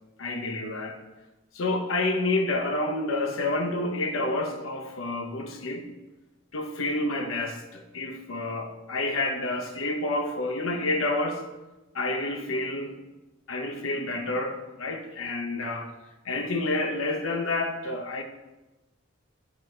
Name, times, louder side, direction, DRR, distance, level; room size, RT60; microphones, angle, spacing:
voice 1, 0.2-1.0 1.5-5.9 6.5-11.5 11.9-12.9 13.5-15.9 16.2-18.2, left 2 dB, 80° left, 0.8 m, -29 dB
7.4 x 5.1 x 3.2 m
head